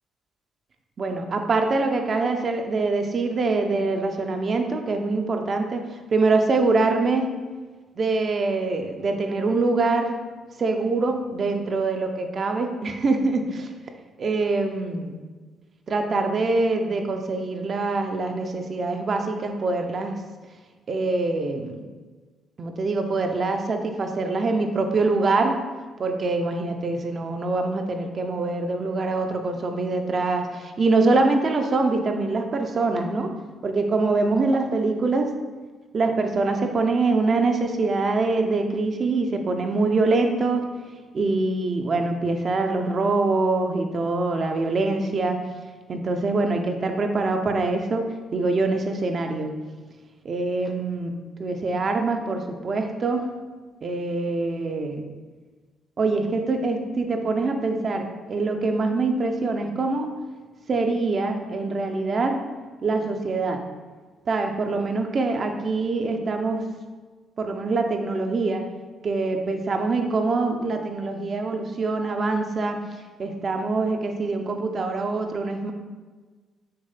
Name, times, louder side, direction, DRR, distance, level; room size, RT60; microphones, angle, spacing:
voice 1, 1.0-5.8 6.1-7.3 8.0-10.2 10.6-13.7 14.2-15.1 15.9-20.2 20.9-21.8 22.6-25.6 26.0-33.3 33.6-35.3 35.9-40.6 41.1-45.4 45.9-49.5 50.2-53.2 53.8-55.0 56.0-60.1 60.7-62.4 62.8-63.6 64.3-66.6 67.4-68.6 69.0-72.8 73.2-75.7, right 3 dB, 45° right, 5 dB, 0.8 m, -24 dB
6.7 x 3.2 x 5.8 m, 1.4 s
cardioid pair, 90°, 0 cm